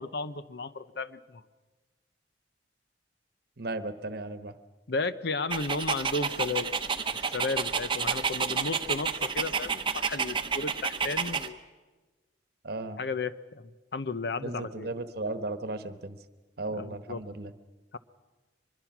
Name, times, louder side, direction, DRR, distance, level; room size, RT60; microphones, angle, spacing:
voice 1, 0.0-1.4 4.9-6.7 7.1-11.6 13.0-14.9 16.7-17.2 17.9-18.0, left 3 dB, 60° left, 13 dB, 0.7 m, -34 dB
voice 2, 3.6-4.6 12.6-13.0 14.4-16.2 16.6-17.5, right 2 dB, 55° right, 11 dB, 1.1 m, -35 dB
Dog, 5.5-11.5, right 6 dB, 25° right, 0.9 m, -30 dB
24.0 x 21.5 x 6.0 m, 1.3 s
head